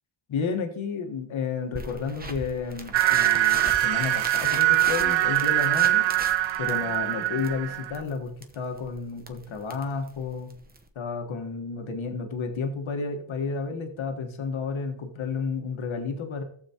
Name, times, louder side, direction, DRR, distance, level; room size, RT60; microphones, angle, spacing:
voice 1, 0.3-6.1 6.6-10.5 10.9-16.4, left 5 dB, 70° left, 5 dB, 1.5 m, -31 dB
sound 1, 1.7-10.9, right 3 dB, 20° right, 0.9 m, -39 dB
sound 2, 2.9-8.0, right 14 dB, 65° right, 0.6 m, -23 dB
14.5 x 7.1 x 2.9 m, 0.63 s
cardioid pair, 80°, 49 cm